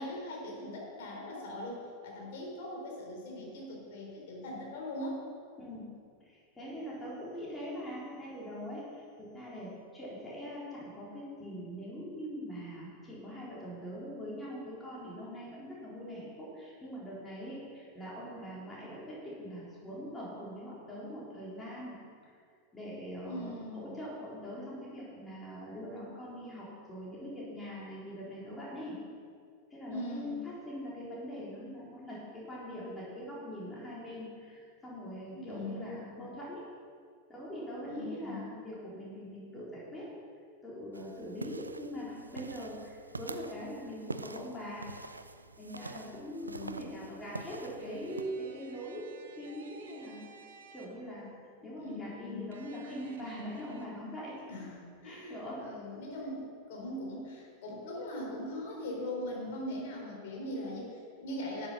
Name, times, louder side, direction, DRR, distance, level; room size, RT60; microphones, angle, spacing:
voice 1, 0.0-5.2 23.2-23.9 29.9-30.5 35.3-36.2 37.8-38.4 46.4-46.9 51.6-52.5 54.5-61.7, left 1 dB, 55° left, -1 dB, 3.9 m, -41 dB
voice 2, 5.6-5.9 6.2-22.0 22.2-22.3 22.7-29.0 29.7-36.7 37.3-40.1 40.6-44.8 45.6-50.3 50.7-51.3 51.6-54.3 55.0-55.6, equal, 15° left, -7 dB, 4.0 m, -42 dB
sound 1, 40.9-48.2, right 3 dB, 80° right, 0.5 m, -45 dB
sound 2, 47.8-51.3 52.5-53.9, right 4 dB, 65° right, 1.1 m, -54 dB
12.5 x 8.9 x 5.9 m, 2.2 s
figure-of-eight pair, 90°, 0 cm